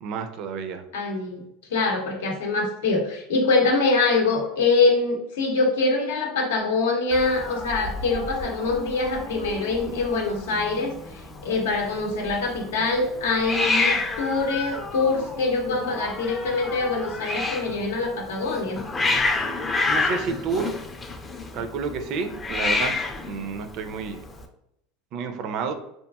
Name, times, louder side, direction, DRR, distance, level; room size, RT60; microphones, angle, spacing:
voice 1, 0.0-0.9 19.8-20.8 21.5-24.2 25.1-25.7, right 5 dB, 55° right, 8 dB, 0.4 m, -30 dB
voice 2, 0.9-1.4 1.7-10.9 11.4-18.8, left 3 dB, 90° left, 1 dB, 0.6 m, -24 dB
Hiss, 7.1-24.4, left 3 dB, 20° left, 0.3 m, -29 dB
2.8 x 2.4 x 2.3 m, 0.79 s
supercardioid pair, 110°, 0 cm